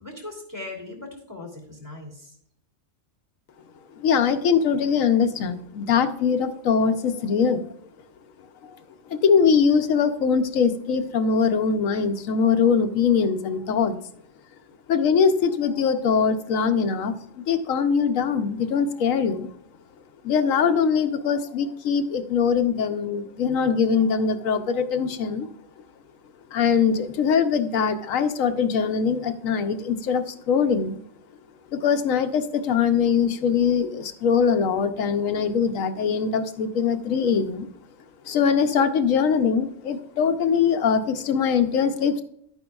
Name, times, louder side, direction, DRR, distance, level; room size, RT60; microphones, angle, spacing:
voice 1, 0.0-2.3, left 2 dB, 15° right, 1 dB, 2.7 m, -39 dB
voice 2, 4.0-7.6 8.6-8.8 9.1-14.0 14.9-19.5 20.2-25.5 26.5-31.0 31.7-37.7 38.2-42.2, left 6 dB, 90° left, 7 dB, 1.2 m, -22 dB
12.0 x 9.0 x 2.3 m, 0.68 s
omnidirectional pair, 1.3 m